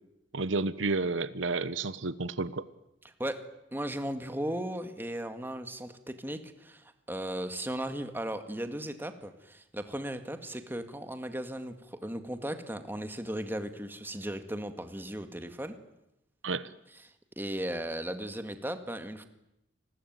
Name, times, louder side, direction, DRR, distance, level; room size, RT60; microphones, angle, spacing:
voice 1, 0.3-2.7 16.4-16.7, right 3 dB, 80° right, 15 dB, 1.1 m, -31 dB
voice 2, 3.7-15.7 17.0-19.3, right 1 dB, 10° right, 8 dB, 2.0 m, -36 dB
29.0 x 20.5 x 9.5 m, 0.88 s
head